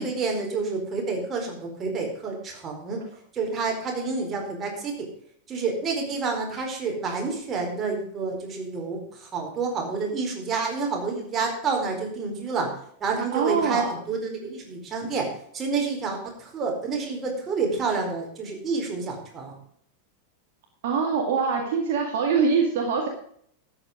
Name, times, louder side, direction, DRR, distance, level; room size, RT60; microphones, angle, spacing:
voice 1, 0.0-3.0 3.3-4.9 5.5-12.7 13.0-19.5, right 4 dB, 25° right, 0 dB, 4.5 m, -29 dB
voice 2, 13.3-13.9 20.8-23.1, right 5 dB, 50° right, 1 dB, 2.2 m, -23 dB
12.5 x 8.8 x 5.0 m, 0.65 s
figure-of-eight pair, 90°, 0 cm